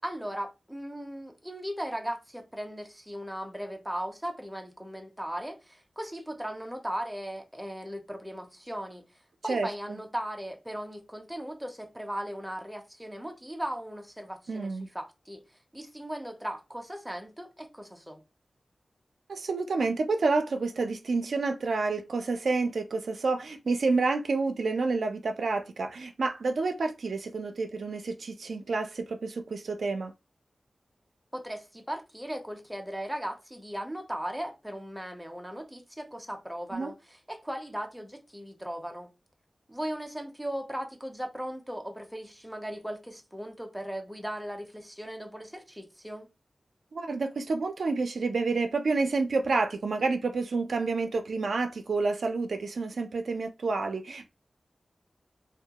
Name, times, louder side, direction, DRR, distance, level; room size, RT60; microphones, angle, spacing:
voice 1, 0.0-9.0 9.4-15.4 15.7-18.2 31.3-39.1 39.7-46.3, equal, 5° right, 0.5 m, -37 dB
voice 2, 9.5-10.0 14.5-14.9 19.3-30.1 36.7-36.9 46.9-54.3, right 3 dB, 85° right, 0.3 m, -29 dB
2.2 x 2.1 x 2.8 m
wide cardioid pair, 115°, 0 cm